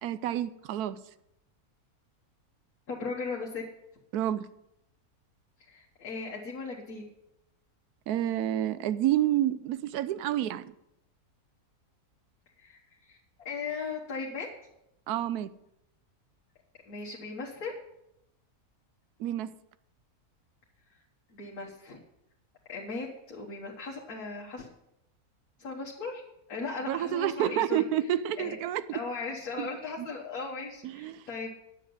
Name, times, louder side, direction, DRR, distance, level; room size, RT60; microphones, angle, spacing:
voice 1, 0.0-1.0 4.1-4.5 8.1-10.7 15.1-15.5 19.2-19.5 26.9-29.0 29.6-29.7 30.0-30.1 30.8-31.2, right 12 dB, 85° right, 1.1 m, -29 dB
voice 2, 2.9-3.6 5.6-7.0 12.6-13.2 13.5-14.5 16.9-17.7 21.3-22.0 22.7-24.7 25.6-26.2 26.5-27.9 28.4-28.6 28.9-31.5, left 4 dB, 75° left, 1.9 m, -37 dB
9.9 x 7.2 x 7.8 m
omnidirectional pair, 1.6 m